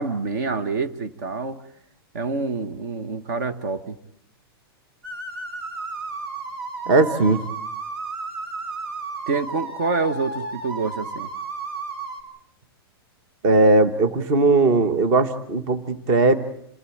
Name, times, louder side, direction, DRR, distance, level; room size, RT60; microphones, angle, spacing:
voice 1, 0.0-1.6 2.1-4.0 9.3-11.3, right 4 dB, 45° right, 10 dB, 1.3 m, -27 dB
sound 1, 5.0-12.2, right 3 dB, 80° right, 5.6 m, -33 dB
voice 2, 6.9-7.4 13.4-16.4, right 2 dB, 25° right, 11 dB, 1.2 m, -18 dB
27.5 x 16.5 x 8.6 m, 0.70 s
supercardioid pair, 180°, 13 cm